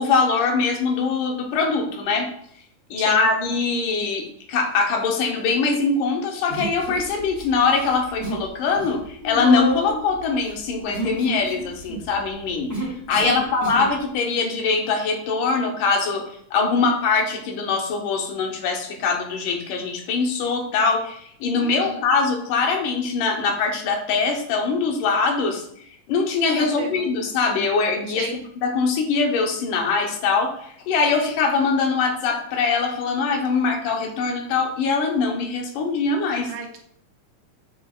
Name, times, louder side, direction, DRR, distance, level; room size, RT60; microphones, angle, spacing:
voice 1, 0.0-2.3 2.9-25.7 26.1-36.5, left 4 dB, 85° left, 3 dB, 2.5 m, -22 dB
Human voice, 6.5-7.4 7.7-8.5 8.7-13.9, right 1 dB, 10° left, 1.9 m, -30 dB
voice 2, 21.6-22.0 26.6-27.0 28.2-28.4 36.5-36.8, right 6 dB, 75° right, 4 dB, 1.8 m, -32 dB
7.6 x 6.5 x 2.4 m, 0.67 s
omnidirectional pair, 3.6 m